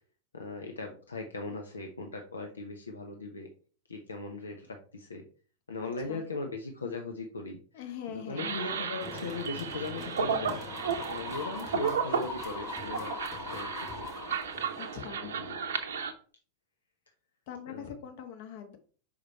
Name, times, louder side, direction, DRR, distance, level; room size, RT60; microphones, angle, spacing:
voice 1, 0.3-3.5 3.9-5.2 5.7-7.9 8.1-10.6 11.1-13.1 13.5-13.9 15.2-15.6 17.7-17.9, left 3 dB, 75° left, 3 dB, 0.8 m, -39 dB
voice 2, 5.8-6.3 7.7-8.8 14.8-15.4 17.5-18.8, left 9 dB, 50° left, 5 dB, 1.3 m, -43 dB
sound 1, 8.4-16.1, right 6 dB, 65° right, 0.8 m, -34 dB
sound 2, 9.0-15.0, left 4 dB, 25° left, 2.6 m, -42 dB
5.4 x 4.9 x 4.4 m, 0.42 s
figure-of-eight pair, 90°, 0 cm